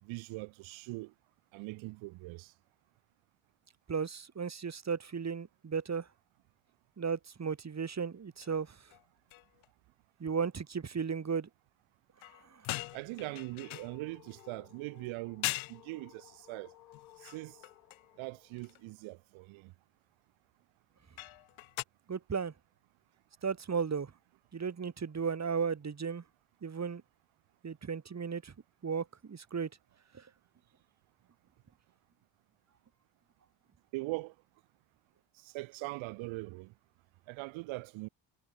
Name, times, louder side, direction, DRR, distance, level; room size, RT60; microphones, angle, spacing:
voice 1, 0.0-1.1 1.5-2.5 12.9-16.7 17.2-17.6 18.2-19.7 33.9-34.3 35.4-36.7 37.3-38.1, right 23 dB, 70° right, 4.2 m, -41 dB
voice 2, 3.9-6.1 7.0-8.7 10.2-11.5 12.5-12.6 22.1-22.5 23.4-24.1 24.5-26.2 26.6-27.0 27.6-28.5 28.8-29.7 30.1-30.2, right 6 dB, 35° right, 3.4 m, -35 dB
sound 1, 8.4-8.6 8.9-9.0 9.3-9.7 12.2-14.5 15.1-15.2 15.4-15.8 16.9-18.1 18.6-18.8 21.2-21.8, left 20 dB, 70° left, 7.0 m, -41 dB
sound 2, 13.0-18.9, left 14 dB, 85° left, 6.4 m, -59 dB
hypercardioid pair, 50°, 49 cm